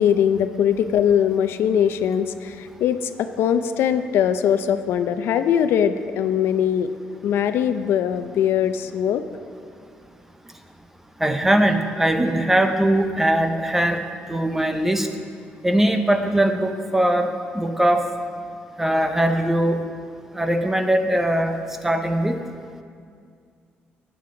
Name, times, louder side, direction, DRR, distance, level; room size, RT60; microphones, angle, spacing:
voice 1, 0.0-6.9 7.2-9.2, left 9 dB, 80° left, 10 dB, 0.5 m, -21 dB
voice 2, 11.2-14.0 14.3-15.1 15.6-18.1 18.8-19.8 20.3-21.5 21.8-22.4, right 1 dB, 10° right, 6 dB, 0.7 m, -20 dB
14.0 x 9.3 x 3.8 m, 2.2 s
cardioid pair, 145°, 4 cm